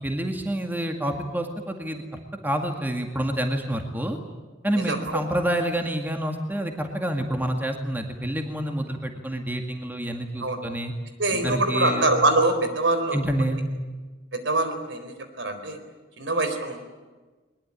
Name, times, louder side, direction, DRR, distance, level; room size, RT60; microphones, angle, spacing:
voice 1, 0.0-2.0 2.4-4.2 4.6-10.9 11.3-12.1 13.1-13.6, right 1 dB, 10° right, 4 dB, 2.0 m, -28 dB
voice 2, 4.9-5.2 10.4-10.6 11.2-13.2 14.3-15.8 16.2-16.8, right 2 dB, 70° right, 7 dB, 4.1 m, -24 dB
21.5 x 21.5 x 10.0 m, 1.3 s
head